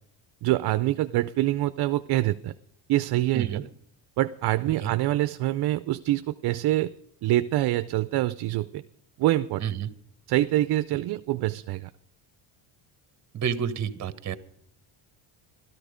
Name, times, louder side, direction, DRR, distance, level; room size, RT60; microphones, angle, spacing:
voice 1, 0.4-2.5 2.9-3.6 4.2-6.9 7.2-8.8 9.2-9.6 10.3-11.9, right 15 dB, 50° right, 12 dB, 0.5 m, -25 dB
voice 2, 9.6-9.9 13.3-14.4, right 8 dB, 35° right, 12 dB, 1.0 m, -29 dB
14.5 x 13.0 x 5.0 m, 0.69 s
cardioid pair, 145°, 50 cm